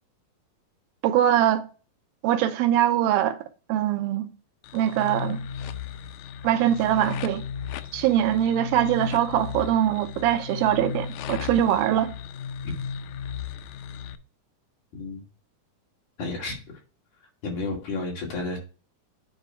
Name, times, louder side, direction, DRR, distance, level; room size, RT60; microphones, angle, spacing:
voice 1, 1.0-1.6 2.2-3.4 3.7-4.3 4.7-5.4 6.4-7.4 7.9-12.1, right 11 dB, 85° right, 2.5 m, -22 dB
sound 1, 4.6-14.2, left 7 dB, 85° left, 1.8 m, -35 dB
voice 2, 14.9-15.3 16.2-16.6 17.4-18.6, left 3 dB, 60° left, 3.6 m, -31 dB
9.2 x 3.6 x 4.4 m
omnidirectional pair, 4.1 m